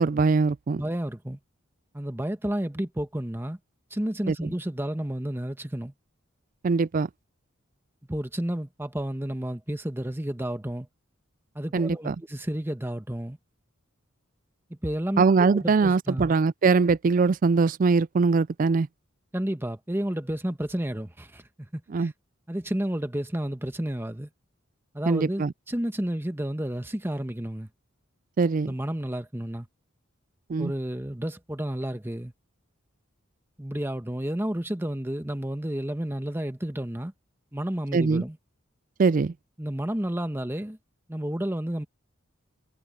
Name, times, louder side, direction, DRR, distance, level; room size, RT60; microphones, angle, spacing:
voice 1, 0.0-0.8 4.3-4.4 6.6-7.1 11.7-12.1 15.2-18.9 21.9-22.1 25.1-25.5 28.4-28.7 30.5-30.7 37.9-38.2 39.0-39.3, right 4 dB, 40° right, 0.3 m, -22 dB
voice 2, 0.8-1.4 1.9-3.6 3.9-5.9 8.1-10.9 11.5-13.4 14.8-16.3 19.3-21.5 21.7-22.1 22.5-24.3 24.9-27.7 28.6-29.7 30.6-32.3 33.6-37.1 37.5-38.4 39.6-40.8 41.1-41.9, right 1 dB, 10° right, 1.1 m, -31 dB
head